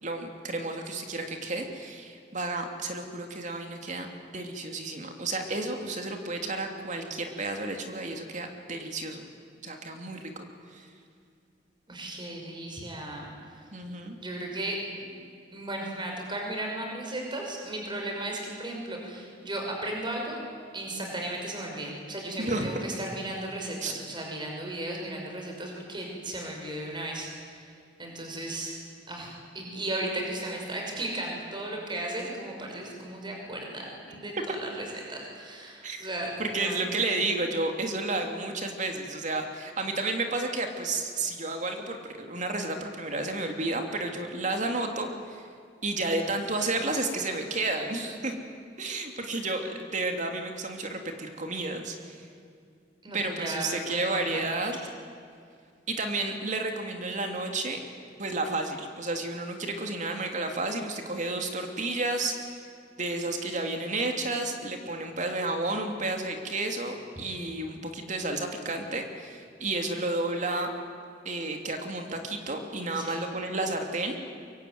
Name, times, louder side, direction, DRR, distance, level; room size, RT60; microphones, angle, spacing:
voice 1, 0.0-4.1 4.3-9.2 9.6-10.4 10.7-10.9 13.7-14.2 22.4-22.8 23.8-23.9 35.8-36.1 36.4-45.5 45.8-48.3 48.8-52.3 53.1-54.8 55.9-57.8 58.2-62.6 63.0-70.7 71.2-74.2, right 2 dB, 45° right, 4 dB, 2.9 m, -31 dB
voice 2, 11.9-13.7 14.2-15.1 15.5-20.4 20.7-27.7 28.0-28.8 29.1-36.8 48.0-48.2 53.0-54.4 72.9-73.2, right 1 dB, 25° right, 1 dB, 5.8 m, -35 dB
24.0 x 23.0 x 9.5 m, 2.3 s
head